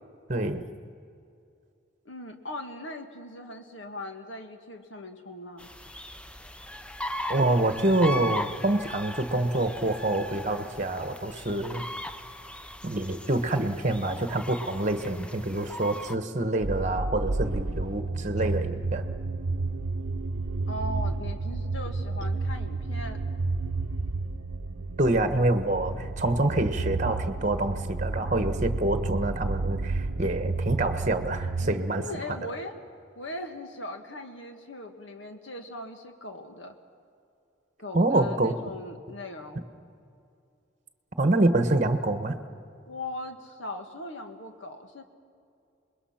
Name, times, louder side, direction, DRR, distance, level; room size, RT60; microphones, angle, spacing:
voice 1, 0.3-0.6 7.3-11.8 12.8-19.1 25.0-32.2 37.9-38.5 41.2-42.3, right 2 dB, 40° right, 8 dB, 1.2 m, -26 dB
voice 2, 2.1-5.7 20.7-23.2 31.6-32.7 33.2-36.8 37.8-39.7 42.9-45.0, left 1 dB, 75° left, 5 dB, 1.8 m, -39 dB
sound 1, 5.6-16.2, left 1 dB, 5° left, 0.5 m, -38 dB
sound 2, 16.6-31.7, right 3 dB, 90° right, 0.7 m, -31 dB
27.0 x 21.5 x 5.9 m, 2.5 s
head